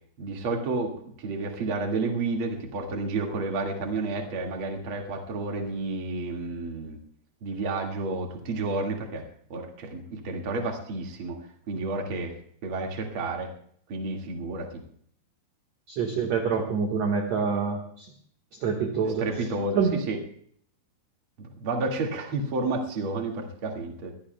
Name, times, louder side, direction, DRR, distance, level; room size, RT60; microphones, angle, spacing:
voice 1, 0.2-0.9 1.2-7.0 7.4-11.4 11.7-12.3 12.6-13.5 13.9-14.8 19.2-20.2 21.4-24.1, right 3 dB, 40° right, 1 dB, 2.1 m, -31 dB
voice 2, 15.9-18.1 18.6-19.2 19.7-20.0, right 6 dB, 55° right, 1 dB, 2.1 m, -26 dB
23.5 x 16.5 x 2.3 m, 0.63 s
omnidirectional pair, 4.7 m